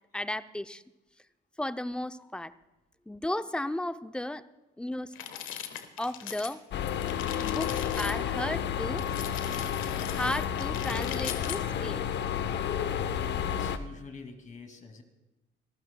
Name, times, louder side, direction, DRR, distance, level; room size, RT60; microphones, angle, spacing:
voice 1, 0.1-0.8 1.6-2.5 3.1-4.4 4.8-5.1 6.0-6.6 7.4-9.0 10.1-12.1, left 1 dB, 5° left, 12 dB, 0.5 m, -34 dB
sound 1, 5.1-6.6 6.8-8.2 9.0-11.6, left 9 dB, 75° left, 1.3 m, -40 dB
sound 2, 6.7-13.8, left 9 dB, 55° left, 0.8 m, -31 dB
voice 2, 13.4-15.0, left 4 dB, 35° left, 5 dB, 2.4 m, -46 dB
25.5 x 14.5 x 2.2 m, 1.0 s
cardioid pair, 95°, 21 cm